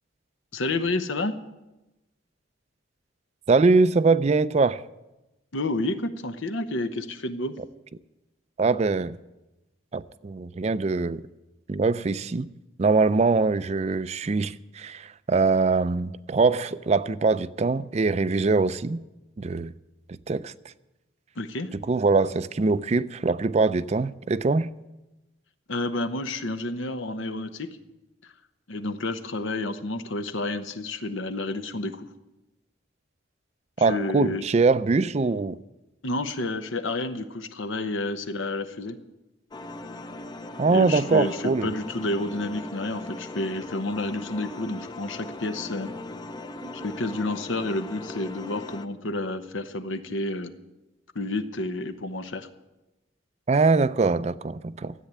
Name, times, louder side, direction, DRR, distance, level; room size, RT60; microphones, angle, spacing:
voice 1, 0.5-1.3 5.5-7.5 21.4-21.7 25.7-27.7 28.2-28.3 28.7-32.1 33.8-34.4 36.0-39.0 40.7-45.9 46.7-50.5 51.1-52.5, left 2 dB, 80° left, 1.0 m, -30 dB
voice 2, 3.5-4.8 8.6-9.2 9.9-11.2 11.7-12.5 12.8-19.0 19.4-19.7 20.3-20.5 21.9-24.7 33.8-35.6 40.6-41.7 46.6-46.7 53.5-54.9, right 4 dB, 35° right, 0.4 m, -23 dB
sound 1, 39.5-48.9, left 2 dB, 20° left, 0.5 m, -39 dB
13.5 x 8.4 x 9.3 m
head